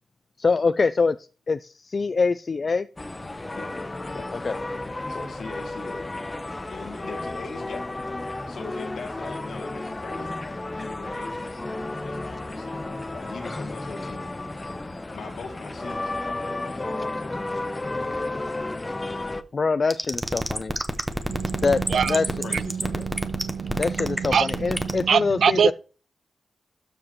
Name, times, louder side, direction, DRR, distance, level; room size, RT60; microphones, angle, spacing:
voice 1, 0.4-1.2 1.5-2.9 4.4-4.6 19.5-20.7 21.6-21.8 22.1-22.2 23.8-25.7, left 4 dB, 50° left, 0.4 m, -24 dB
sound 1, 3.0-19.4, left 2 dB, 25° left, 0.9 m, -33 dB
voice 2, 5.1-6.4 6.7-8.2 8.5-11.6 12.0-14.5 15.1-17.7 21.9-23.2, left 4 dB, 70° left, 1.8 m, -40 dB
sound 2, 19.9-25.0, right 1 dB, 10° right, 1.3 m, -26 dB
voice 3, 21.3-25.7, right 7 dB, 70° right, 0.3 m, -25 dB
13.0 x 4.9 x 3.1 m
supercardioid pair, 40°, 0 cm